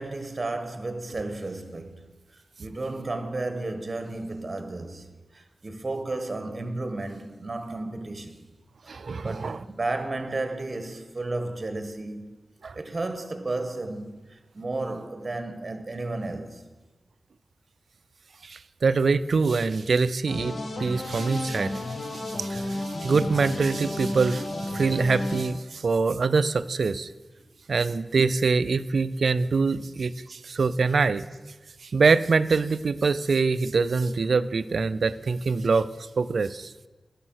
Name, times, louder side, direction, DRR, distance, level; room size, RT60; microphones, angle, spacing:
voice 1, 0.0-2.1 2.6-8.4 8.9-12.3 12.7-14.2 14.5-16.7 30.9-31.0, right 2 dB, 40° right, 1.3 m, -33 dB
voice 2, 8.9-9.6 12.6-12.7 18.4-21.7 22.4-27.1 27.7-31.2 31.9-35.9 36.2-36.7, right 4 dB, 75° right, 0.4 m, -24 dB
sound 1, 20.3-25.4, left 1 dB, 70° left, 1.3 m, -32 dB
11.0 x 6.4 x 6.3 m
cardioid pair, 60°, 0 cm